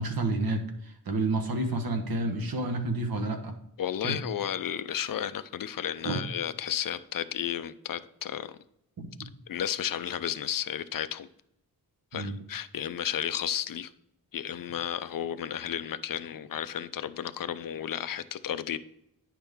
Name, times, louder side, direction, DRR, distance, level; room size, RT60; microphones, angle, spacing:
voice 1, 0.0-3.6 4.0-4.2 6.0-6.2 9.0-9.1 12.1-12.4, right 2 dB, 70° right, 4 dB, 1.2 m, -30 dB
voice 2, 3.8-8.6 9.5-11.3 12.1-13.9 14.3-18.8, left 10 dB, 60° left, 13 dB, 0.5 m, -33 dB
9.9 x 6.0 x 3.5 m, 0.81 s
wide cardioid pair, 175°, 37 cm